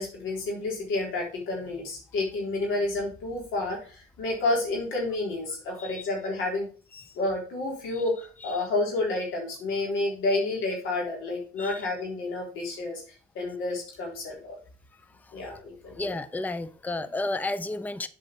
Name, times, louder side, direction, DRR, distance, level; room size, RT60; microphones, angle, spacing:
voice 1, 0.0-6.7 7.2-13.0 13.3-14.6 15.3-16.2, left 2 dB, 90° left, -1 dB, 3.8 m, -30 dB
voice 2, 16.0-18.1, left 2 dB, 10° left, 13 dB, 0.6 m, -32 dB
7.9 x 5.4 x 4.4 m, 0.40 s
cardioid pair, 90°, 20 cm